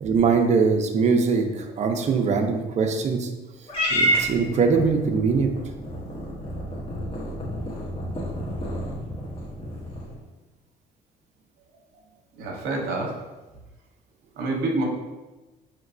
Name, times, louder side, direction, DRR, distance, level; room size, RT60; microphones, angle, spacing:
voice 1, 0.0-3.3 3.9-5.5, right 5 dB, 45° right, 4 dB, 0.6 m, -22 dB
Purr / Meow, 3.7-10.2, equal, 35° left, 1.2 m, -29 dB
voice 2, 12.3-13.1 14.4-14.8, right 2 dB, 75° right, -1 dB, 0.8 m, -27 dB
5.1 x 3.0 x 2.6 m, 1.1 s
cardioid pair, 110°, 17 cm